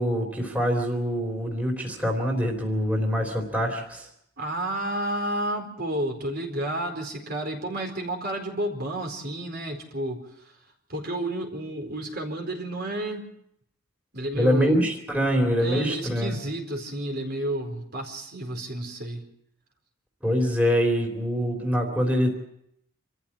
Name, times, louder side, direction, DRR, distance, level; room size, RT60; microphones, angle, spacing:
voice 1, 0.0-4.1 14.3-16.4 20.2-22.4, equal, 5° right, 1 dB, 3.4 m, -24 dB
voice 2, 4.4-10.6 10.9-13.3 14.1-14.9 15.6-19.2, right 1 dB, 45° right, 2 dB, 4.4 m, -31 dB
27.0 x 14.5 x 8.6 m, 0.77 s
head